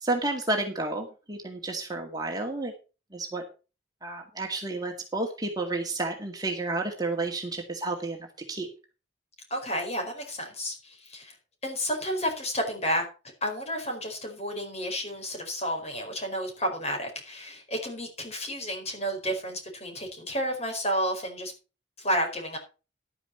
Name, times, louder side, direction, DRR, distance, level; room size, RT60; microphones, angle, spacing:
voice 1, 0.0-2.7 3.1-3.4 4.0-8.2 8.5-8.7, right 2 dB, 20° right, 2 dB, 2.1 m, -31 dB
voice 2, 9.5-11.3 11.6-13.0 13.4-21.5 22.0-22.6, equal, 35° left, 3 dB, 4.8 m, -31 dB
12.0 x 9.8 x 4.4 m, 0.32 s
head